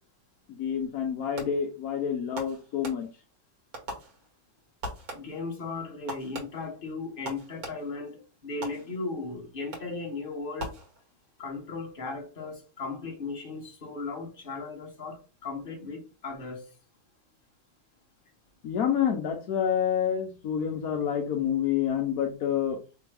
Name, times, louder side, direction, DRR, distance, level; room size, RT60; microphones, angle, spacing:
voice 1, 0.5-3.1 18.6-22.8, left 8 dB, 60° left, 1.1 m, -28 dB
Fireworks, 1.4-1.8 2.4-3.4 3.7-4.5 4.8-5.5 6.1-8.1 8.6-9.2 9.7-10.1 10.6-11.3, right 1 dB, 55° right, 1.6 m, -41 dB
voice 2, 5.1-10.7 11.4-16.7, left 3 dB, 35° left, 1.1 m, -37 dB
3.5 x 2.9 x 4.7 m
omnidirectional pair, 2.0 m